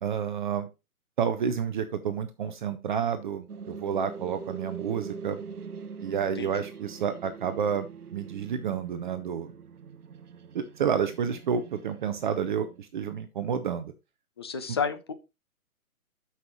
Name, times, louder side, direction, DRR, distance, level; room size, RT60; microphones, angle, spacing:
voice 1, 0.0-0.7 1.2-5.4 6.0-9.5 10.5-13.9, right 7 dB, 35° right, 9 dB, 0.7 m, -30 dB
sound 1, 3.5-12.8, right 5 dB, 80° right, 0.9 m, -43 dB
voice 2, 14.4-15.1, left 6 dB, 20° left, 10 dB, 0.4 m, -30 dB
13.5 x 5.7 x 3.0 m, 0.26 s
figure-of-eight pair, 135°, 44 cm